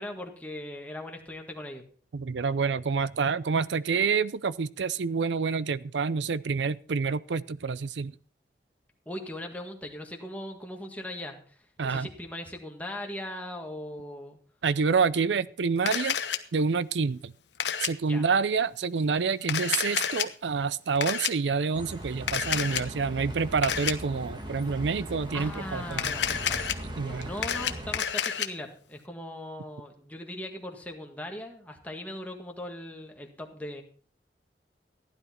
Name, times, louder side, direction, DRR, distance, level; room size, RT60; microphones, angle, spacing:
voice 1, 0.0-1.8 9.1-14.4 18.0-18.3 25.3-33.8, left 1 dB, 10° left, 1.7 m, -39 dB
voice 2, 2.1-8.1 11.8-12.1 14.6-16.2 16.5-17.3 17.8-26.1 27.0-27.3, right 5 dB, 90° right, 0.5 m, -28 dB
Camera, 15.9-16.4 17.6-17.9 19.4-20.3 21.0-21.3 22.3-22.8 23.6-23.9 25.9-26.7 27.2-28.5, left 8 dB, 85° left, 1.0 m, -29 dB
Bus, 21.7-28.0, right 1 dB, 25° right, 1.5 m, -39 dB
15.0 x 11.0 x 4.4 m
head